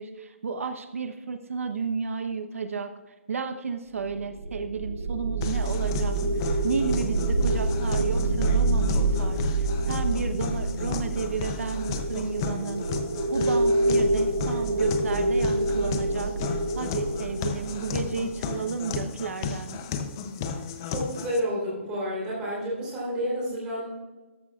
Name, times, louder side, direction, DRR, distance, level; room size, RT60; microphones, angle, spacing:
voice 1, 0.0-2.9 3.3-12.8 13.3-16.3 16.7-19.8, right 5 dB, 85° right, 8 dB, 0.9 m, -32 dB
sound 1, 4.1-19.3, right 2 dB, 65° right, 1.3 m, -27 dB
sound 2, 5.4-21.4, left 6 dB, 15° left, 0.5 m, -34 dB
voice 2, 20.9-23.9, equal, 10° right, -6 dB, 3.4 m, -30 dB
13.5 x 12.0 x 2.4 m, 1.2 s
hypercardioid pair, 180°, 7 cm